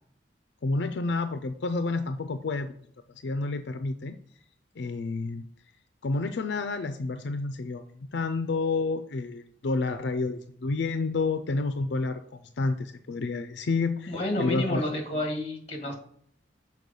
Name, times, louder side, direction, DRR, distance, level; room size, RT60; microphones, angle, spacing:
voice 1, 0.6-2.7 3.2-4.2 4.8-5.5 6.0-14.8, left 3 dB, 75° left, 9 dB, 0.4 m, -29 dB
voice 2, 14.1-15.9, left 1 dB, 35° left, 2 dB, 1.7 m, -30 dB
6.4 x 4.5 x 5.3 m, 0.64 s
head